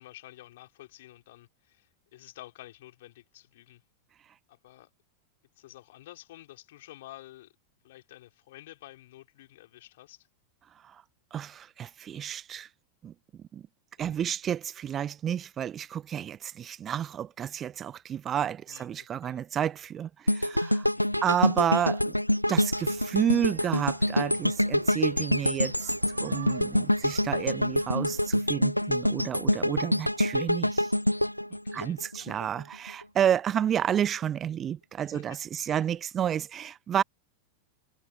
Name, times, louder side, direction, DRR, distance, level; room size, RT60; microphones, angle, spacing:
voice 1, 0.0-3.8 4.5-4.9 5.6-7.5 7.8-10.3 14.0-14.1 18.7-19.4 20.9-21.3 30.0-30.4 31.5-32.4 35.0-35.8, left 15 dB, 55° left, 4.7 m, -51 dB
voice 2, 11.3-12.7 13.0-13.1 13.5-13.6 14.0-20.9 21.2-22.1 22.5-25.9 26.2-30.9 31.7-37.0, right 9 dB, 25° right, 0.3 m, -30 dB
sound 1, 20.3-32.4 32.9-33.0, left 1 dB, 90° left, 0.5 m, -26 dB
sound 2, 22.7-28.3, right 8 dB, 65° right, 2.3 m, -48 dB
figure-of-eight pair, 90°, 0 cm